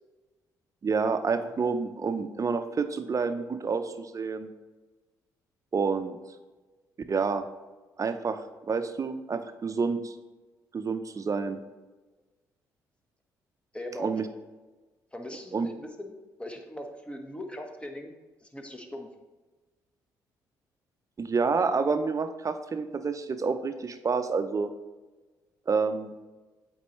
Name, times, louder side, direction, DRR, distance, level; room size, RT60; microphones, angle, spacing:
voice 1, 0.8-4.5 5.7-6.2 7.1-7.4 8.0-8.4 8.7-10.1 10.7-11.6 14.0-14.3 15.5-15.7 21.2-24.7 25.7-26.1, right 5 dB, 35° right, 9 dB, 0.7 m, -28 dB
voice 2, 13.7-14.1 15.1-16.1 16.4-18.1 18.4-19.1, left 1 dB, 10° left, 3 dB, 1.2 m, -39 dB
8.2 x 4.5 x 3.1 m, 1.2 s
hypercardioid pair, 45°, 9 cm